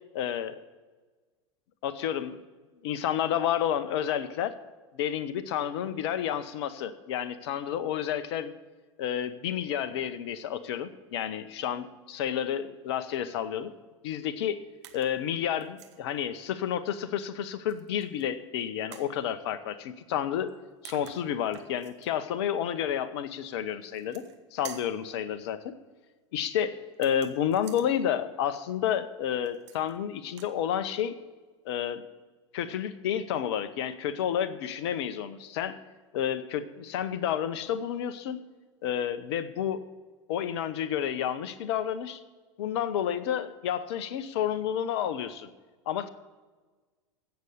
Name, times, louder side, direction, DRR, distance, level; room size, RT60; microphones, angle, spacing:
voice 1, 0.1-0.6 1.8-2.4 2.8-4.5 4.9-8.5 9.0-13.7 14.0-14.6 14.9-20.5 20.8-24.2 24.5-25.7 26.3-31.2 31.6-32.1 32.5-35.8 36.1-38.4 38.8-39.8 40.3-42.2 42.6-45.5 45.9-46.1, left 9 dB, 60° left, 13 dB, 1.0 m, -30 dB
sound 1, 14.8-15.2 15.6-16.0 17.7-18.3 18.9-19.1 20.5-20.6 20.8-22.1 23.8-24.4 24.6-25.0 26.9-27.9 29.4-30.0 30.3-30.5, right 10 dB, 65° right, 1.4 m, -48 dB
16.0 x 7.1 x 6.5 m, 1.3 s
figure-of-eight pair, 85°, 16 cm